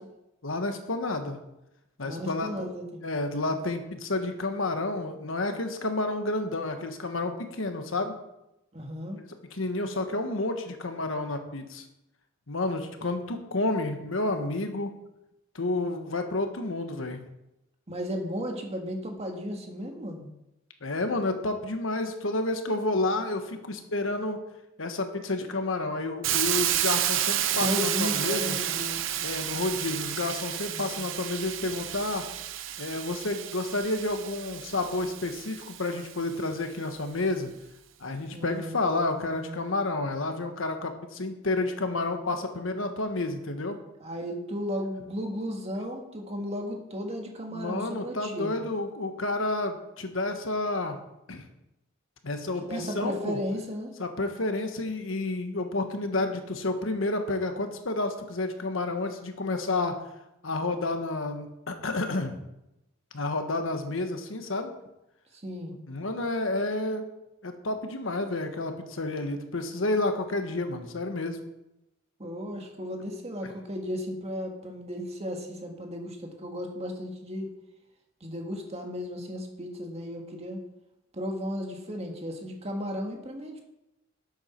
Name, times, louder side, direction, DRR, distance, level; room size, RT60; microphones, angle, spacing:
voice 1, 0.4-1.4 2.0-2.7 3.0-8.2 9.5-11.8 12.5-14.9 15.5-17.2 20.8-24.4 24.8-28.6 29.2-32.2 32.8-37.5 38.0-43.8 47.5-51.0 51.3-51.4 52.2-53.4 54.0-60.0 60.4-62.4 63.1-64.7 65.9-67.0 67.4-71.4, left 2 dB, 80° left, 6 dB, 1.3 m, -30 dB
voice 2, 2.0-3.0 8.7-9.2 17.9-20.3 27.5-29.0 30.7-31.1 38.3-39.6 44.0-48.6 52.6-53.9 65.3-65.7 72.2-77.5 78.2-80.6 81.1-83.6, equal, 30° right, 2 dB, 1.8 m, -35 dB
Hiss, 26.2-36.1, right 11 dB, 70° right, 0.7 m, -31 dB
11.5 x 8.0 x 4.5 m, 0.89 s
head